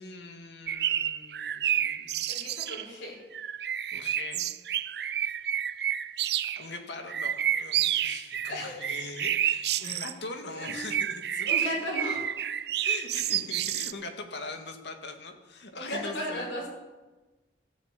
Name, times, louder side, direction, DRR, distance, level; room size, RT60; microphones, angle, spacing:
voice 1, 0.0-2.3 3.9-4.5 6.5-11.5 12.8-16.5, left 3 dB, 70° left, 5 dB, 2.0 m, -41 dB
sound 1, 0.7-2.9 3.3-6.7 7.1-10.1 10.6-13.9, right 10 dB, 60° right, 0.5 m, -30 dB
voice 2, 2.3-3.2 8.5-8.8 9.8-10.0 10.5-10.8 11.4-12.3 15.7-16.7, left 1 dB, 90° left, -1 dB, 5.9 m, -35 dB
14.0 x 10.5 x 8.3 m, 1.2 s
head